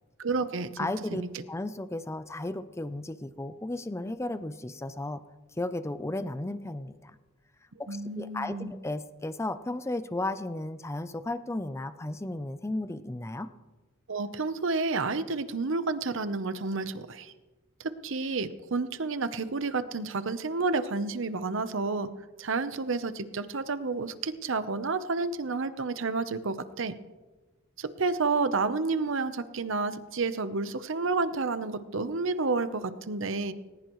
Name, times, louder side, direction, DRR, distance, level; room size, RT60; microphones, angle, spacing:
voice 1, 0.2-1.4 7.9-8.8 14.1-17.3 17.8-22.1 22.4-26.9 27.8-33.5, right 3 dB, 65° right, 12 dB, 0.8 m, -30 dB
voice 2, 0.8-1.2 1.5-5.2 5.6-7.2 7.8-13.5, left 2 dB, 15° left, 12 dB, 0.5 m, -34 dB
19.5 x 19.5 x 3.1 m, 1.2 s
head